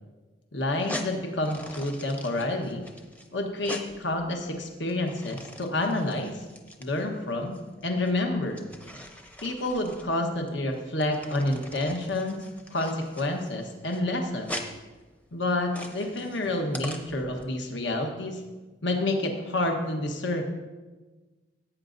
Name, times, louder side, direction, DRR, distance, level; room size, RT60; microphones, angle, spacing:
voice 1, 0.5-2.8 3.3-6.4 6.8-7.6 7.8-8.6 9.4-12.4 12.7-14.6 15.3-18.4 18.8-20.4, left 2 dB, 75° left, 3 dB, 1.2 m, -29 dB
sound 1, 0.7-17.4, left 1 dB, 10° left, 0.7 m, -42 dB
17.0 x 8.8 x 2.6 m, 1.3 s
head